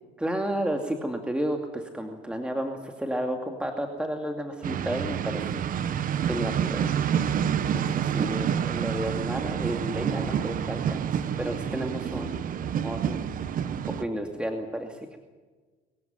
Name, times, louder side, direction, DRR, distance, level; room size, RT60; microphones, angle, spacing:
voice 1, 0.2-7.3 7.7-12.5 12.8-13.2 13.8-15.2, right 1 dB, 5° right, 3 dB, 2.4 m, -32 dB
sound 1, 4.6-14.0, right 8 dB, 55° right, 1.1 m, -28 dB
24.0 x 15.5 x 9.3 m, 1.3 s
cardioid pair, 110°, 17 cm